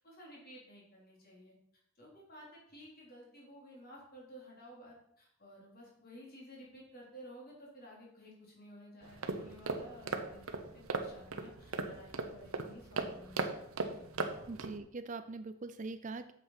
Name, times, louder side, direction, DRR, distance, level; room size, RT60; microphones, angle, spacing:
voice 1, 0.0-1.5 2.0-13.7 13.9-14.1, equal, 40° left, -3 dB, 3.8 m, -54 dB
sound 1, 9.0-14.8, right 3 dB, 70° right, 1.1 m, -38 dB
voice 2, 14.5-16.3, right 3 dB, 35° right, 10 dB, 0.4 m, -42 dB
8.5 x 7.7 x 5.8 m, 0.72 s
head